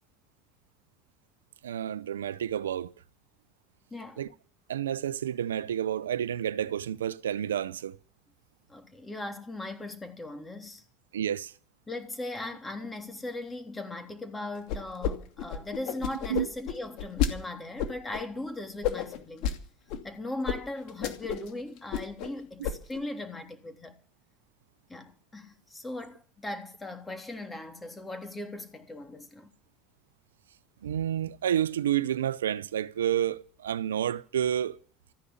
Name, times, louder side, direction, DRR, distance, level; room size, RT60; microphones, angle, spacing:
voice 1, 1.6-2.9 4.2-4.3 4.7-8.0 11.1-11.5 16.3-16.5 30.8-34.8, right 10 dB, 90° right, 0.6 m, -30 dB
voice 2, 3.9-4.2 8.7-10.8 11.9-19.5 20.0-24.0 24.9-29.5, left 2 dB, 20° left, 3.3 m, -39 dB
sound 1, 14.7-15.1 15.4-17.3 17.8-18.2 18.8-19.6 19.9-20.0 20.5-20.6 20.9-21.5 21.8-22.3 22.6-23.0, left 8 dB, 65° left, 2.6 m, -30 dB
14.5 x 9.9 x 8.5 m
hypercardioid pair, 75°, 0 cm